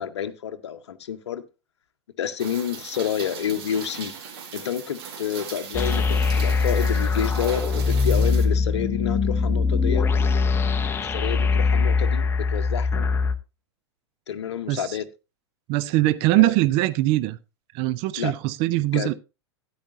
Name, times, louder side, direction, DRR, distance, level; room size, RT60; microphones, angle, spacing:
voice 1, 0.0-1.4 2.2-4.1 4.5-10.1 11.0-13.1 14.3-15.0 16.3-16.5 18.2-18.3 18.9-19.1, left 9 dB, 65° left, 0.8 m, -29 dB
Rain, 2.4-8.5, right 6 dB, 55° right, 2.1 m, -39 dB
sound 1, 5.7-13.4, left 4 dB, 15° left, 0.7 m, -22 dB
voice 2, 14.7-15.0 15.7-17.4 17.7-19.1, right 17 dB, 40° right, 0.5 m, -22 dB
13.0 x 9.5 x 2.6 m
figure-of-eight pair, 95°, 15 cm